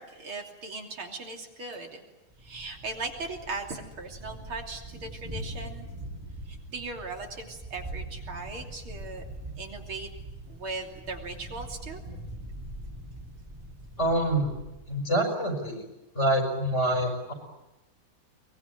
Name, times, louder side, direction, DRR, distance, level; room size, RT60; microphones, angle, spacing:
voice 1, 0.0-2.0 2.4-5.9 6.5-9.2 9.6-10.1 10.5-12.0, right 3 dB, 70° right, 2 dB, 3.9 m, -38 dB
Thunder, 2.4-15.0, right 1 dB, 10° right, 3.5 m, -42 dB
voice 2, 14.0-14.5 14.9-15.8 16.1-17.3, right 1 dB, 30° left, 4 dB, 6.1 m, -26 dB
23.0 x 22.5 x 9.9 m, 0.99 s
omnidirectional pair, 2.4 m